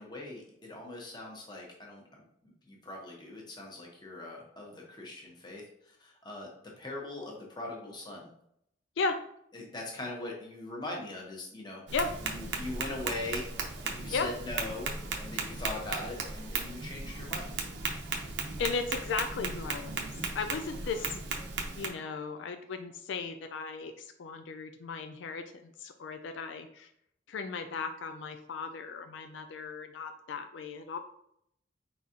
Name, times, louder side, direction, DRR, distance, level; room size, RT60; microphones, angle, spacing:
voice 1, 0.0-6.5 6.8-8.3 9.5-11.8 12.2-13.5 13.8-14.9 15.2-17.5, left 2 dB, 20° left, -1 dB, 1.0 m, -41 dB
Tap, 11.9-21.9, right 4 dB, 70° right, 0.7 m, -36 dB
voice 2, 18.6-21.2 21.8-26.9 27.3-31.0, left 4 dB, 75° left, 7 dB, 0.4 m, -36 dB
4.7 x 3.9 x 2.8 m, 0.73 s
head